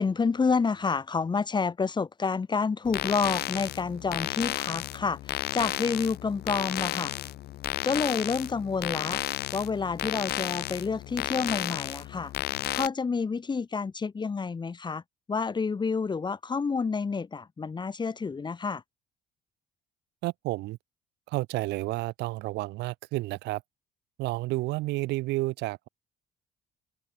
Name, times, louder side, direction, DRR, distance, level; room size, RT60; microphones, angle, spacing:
voice 1, 0.0-7.1 7.8-9.2 9.5-12.3 12.7-15.0 15.3-18.8, left 5 dB, 25° left, 2.3 m, -29 dB
sound 1, 2.8-12.9, left 14 dB, 70° left, 2.0 m, -33 dB
voice 2, 20.2-20.8 21.3-23.6 24.2-25.9, right 19 dB, 90° right, 8.0 m, -31 dB
open air
cardioid pair, 110°, 17 cm